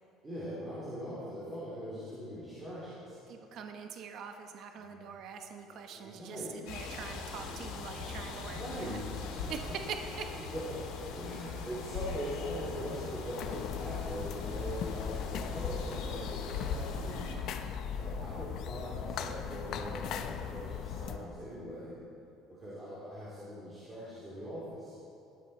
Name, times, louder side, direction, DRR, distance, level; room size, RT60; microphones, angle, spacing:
voice 1, 0.2-3.2 4.8-5.0 5.7-6.7 8.3-9.2 9.4-9.5 10.5-10.8 11.1-17.3 18.0-22.0 22.5-25.0, equal, 15° right, -10 dB, 3.3 m, -41 dB
voice 2, 3.3-9.0 9.5-10.3, right 6 dB, 45° right, 5 dB, 0.9 m, -43 dB
sound 1, 6.7-17.3, left 4 dB, 80° left, 2.5 m, -41 dB
sound 2, 13.4-21.2, left 8 dB, 45° left, 0.7 m, -39 dB
19.0 x 12.5 x 4.3 m, 2.6 s
cardioid pair, 170°, 0 cm